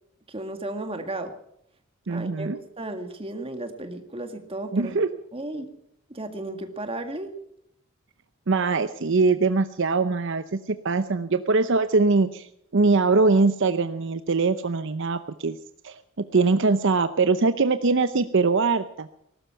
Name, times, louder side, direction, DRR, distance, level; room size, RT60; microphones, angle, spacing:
voice 1, 0.3-1.3 2.1-4.9 5.3-5.7 6.1-7.3, right 2 dB, 25° right, 6 dB, 1.9 m, -34 dB
voice 2, 2.1-2.6 4.7-5.2 8.5-15.6 15.8-16.0 16.3-19.1, right 3 dB, 60° right, 11 dB, 0.7 m, -22 dB
19.5 x 12.5 x 5.7 m, 0.76 s
head